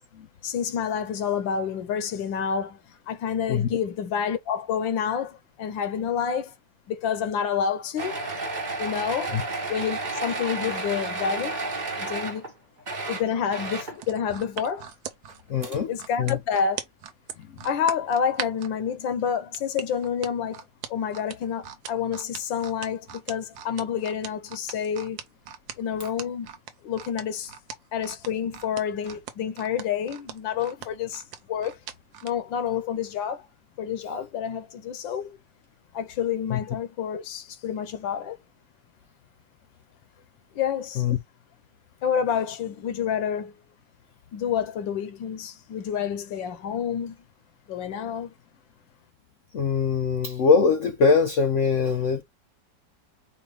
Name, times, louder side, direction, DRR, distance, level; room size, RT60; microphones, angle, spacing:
voice 1, 0.4-2.8 3.1-6.5 6.9-8.2 8.8-9.3 9.7-11.6 12.0-12.5 13.1-14.9 15.7-16.8 17.6-20.6 20.9-25.2 25.8-26.5 26.8-27.5 27.9-31.2 31.5-31.8 32.2-33.4 33.8-35.4 35.9-38.4 40.5-41.1 42.0-43.5 44.3-47.2 47.7-48.3, left 7 dB, 90° left, 1.6 m, -28 dB
making juice (foreground), 8.0-12.5 12.8-14.0 15.3-15.4 15.6-15.8, right 3 dB, 30° right, 0.9 m, -32 dB
sound 1, 14.0-18.7 19.5-32.3 32.8-32.9, right 10 dB, 90° right, 1.5 m, -39 dB
voice 2, 15.5-15.9 16.2-16.4 36.5-36.6 41.0-41.2 49.5-52.2, left 5 dB, 70° left, 0.7 m, -22 dB
4.9 x 2.6 x 3.2 m
omnidirectional pair, 2.0 m